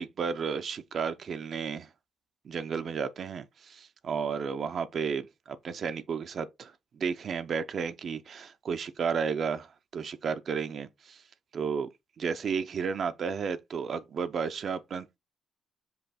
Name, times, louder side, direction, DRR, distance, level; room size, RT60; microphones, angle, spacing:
voice 1, 0.0-1.9 2.4-11.2 11.5-11.9 12.2-15.2, right 6 dB, 55° right, 0.5 m, -33 dB
5.4 x 2.3 x 4.0 m
cardioid pair, 90°, 0 cm